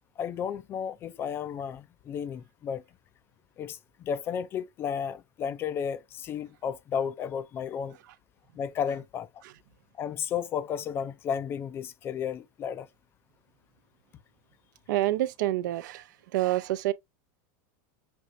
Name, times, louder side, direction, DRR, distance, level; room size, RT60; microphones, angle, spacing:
voice 1, 0.2-2.8 3.6-8.0 8.6-9.3 10.0-12.9, left 7 dB, 20° left, 0.3 m, -33 dB
voice 2, 14.9-16.0 16.3-16.9, right 15 dB, 70° right, 0.5 m, -27 dB
6.2 x 3.1 x 2.6 m
supercardioid pair, 160°, 10 cm